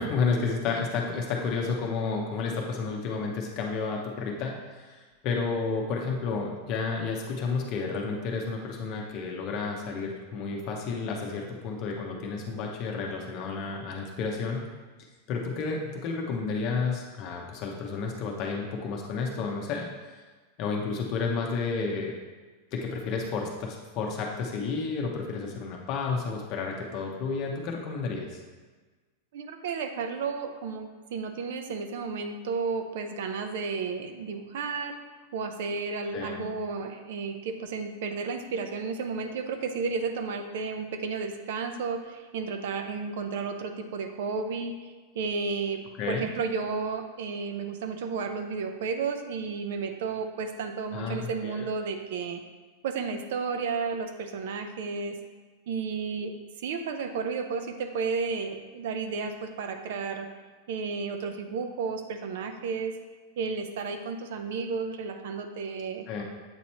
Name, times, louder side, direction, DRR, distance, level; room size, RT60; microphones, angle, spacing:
voice 1, 0.0-14.7 15.3-19.9 20.6-22.1 22.7-28.4 36.1-36.4 46.0-46.2 50.9-51.7 66.1-66.2, left 4 dB, 40° left, 0 dB, 0.7 m, -31 dB
voice 2, 29.3-35.0 35.3-45.8 46.1-52.4 52.8-55.2 55.7-56.3 56.6-60.3 60.7-62.9 63.4-66.0, right 5 dB, 70° right, 7 dB, 0.6 m, -32 dB
7.8 x 3.0 x 4.2 m, 1.3 s
supercardioid pair, 155°, 0 cm